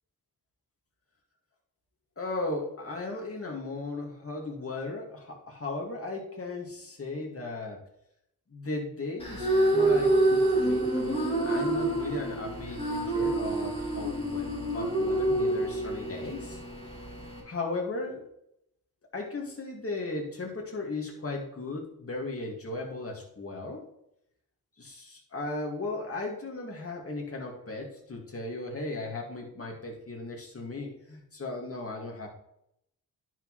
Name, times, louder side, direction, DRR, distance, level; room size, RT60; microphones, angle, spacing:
voice 1, 2.2-7.8 8.5-16.6 17.4-18.2 19.1-23.8 24.8-32.3, left 2 dB, 35° left, 0 dB, 2.2 m, -36 dB
sound 1, 9.2-17.4, right 2 dB, 15° left, 2.6 m, -27 dB
10.0 x 6.3 x 3.2 m, 0.77 s
wide cardioid pair, 95°, 39 cm